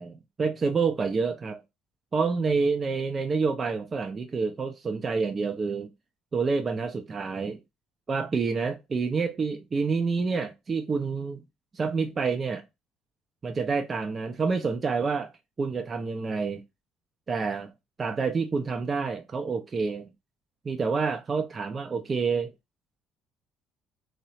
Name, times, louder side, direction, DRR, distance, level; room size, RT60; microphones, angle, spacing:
voice 1, 0.0-1.6 2.1-5.9 6.3-7.6 8.1-11.4 11.7-12.6 13.4-15.3 15.6-16.6 17.3-17.7 18.0-20.1 20.6-22.5, right 4 dB, 35° right, 0.5 m, -28 dB
3.0 x 2.0 x 2.8 m
hypercardioid pair, 65°, 0 cm